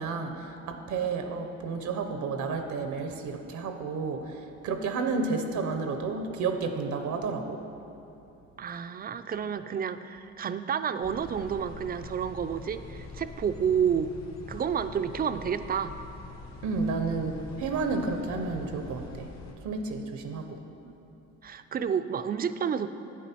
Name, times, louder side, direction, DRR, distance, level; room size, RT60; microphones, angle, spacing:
voice 1, 0.0-7.6 16.6-19.3 19.6-20.6, right 4 dB, 75° right, 6 dB, 0.7 m, -31 dB
voice 2, 8.6-14.1 14.5-15.9 20.8-21.0 21.4-22.9, right 7 dB, 30° right, 11 dB, 0.4 m, -30 dB
sound 1, 11.0-19.5, left 3 dB, 60° left, 1.1 m, -44 dB
8.5 x 7.3 x 4.2 m, 2.8 s
cardioid pair, 90°, 30 cm